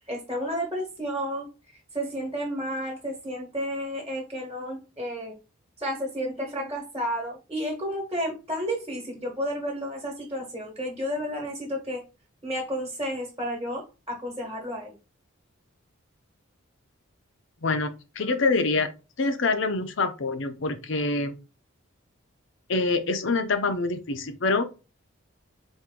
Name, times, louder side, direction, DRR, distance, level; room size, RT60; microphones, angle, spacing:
voice 1, 0.1-1.5 1.9-5.3 5.8-12.0 12.4-14.9, equal, 20° right, 1.3 m, -31 dB
voice 2, 17.6-18.9 19.2-21.3 22.7-24.6, left 3 dB, 60° left, 0.6 m, -25 dB
4.4 x 2.7 x 3.7 m
head